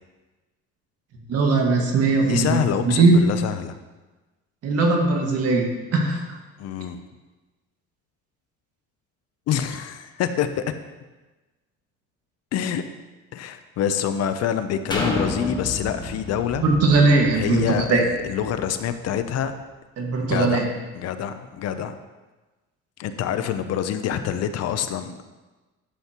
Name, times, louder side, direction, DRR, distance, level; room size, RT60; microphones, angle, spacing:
voice 1, 1.3-2.6 2.8-3.2 4.6-6.2 16.6-18.0 20.0-20.7, right 3 dB, 55° right, 1 dB, 1.9 m, -19 dB
voice 2, 2.2-3.7 6.6-7.0 9.5-10.6 12.5-12.8 13.3-16.6 17.3-19.6 20.2-20.6 20.9-22.0 23.0-25.2, left 9 dB, 60° left, 10 dB, 0.7 m, -26 dB
sound 1, 14.9-18.7 19.2-19.3, left 2 dB, 15° left, 1.4 m, -31 dB
11.5 x 7.2 x 3.0 m, 1.2 s
cardioid pair, 115°, 29 cm